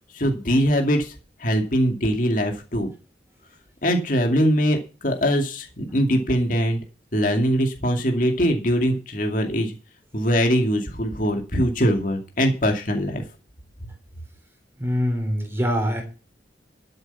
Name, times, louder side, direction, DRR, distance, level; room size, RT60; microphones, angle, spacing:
voice 1, 0.1-1.1 1.4-2.9 3.8-6.8 7.1-9.7 10.1-13.2, equal, 50° left, 3 dB, 2.4 m, -22 dB
voice 2, 14.8-16.0, equal, 15° right, 3 dB, 3.6 m, -24 dB
12.5 x 8.0 x 5.6 m, 0.34 s
head